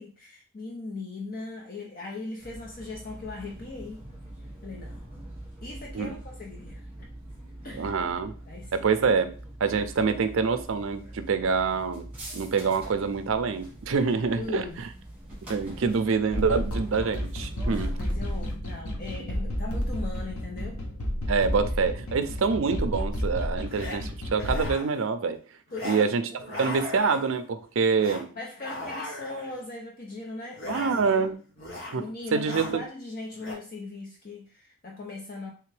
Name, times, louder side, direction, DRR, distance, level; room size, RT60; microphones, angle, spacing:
voice 1, 0.0-4.1 4.6-5.1 5.6-6.9 7.6-8.0 8.5-8.9 14.4-14.8 17.7-20.8 22.1-22.2 25.7-26.0 26.5-26.6 28.4-31.3 32.0-35.5, left 3 dB, 40° left, 0 dB, 0.5 m, -39 dB
sound 1, 2.4-18.6, right 1 dB, 5° right, 1.3 m, -44 dB
voice 2, 7.7-8.3 8.7-9.3 9.6-12.0 12.3-14.6 15.5-17.9 21.3-25.4 25.8-28.3 30.7-31.4 31.9-32.8, right 5 dB, 60° right, 9 dB, 0.4 m, -26 dB
sound 2, 16.3-24.7, equal, 80° left, 1.0 m, -31 dB
sound 3, 21.7-21.9 23.7-24.0 24.3-25.0 25.7-26.1 26.4-27.5 28.0-28.2 28.6-29.6 30.5-31.3 31.6-32.0 32.3-32.7 33.3-33.5, left 1 dB, 60° left, 2.0 m, -38 dB
3.4 x 3.4 x 3.2 m, 0.39 s
head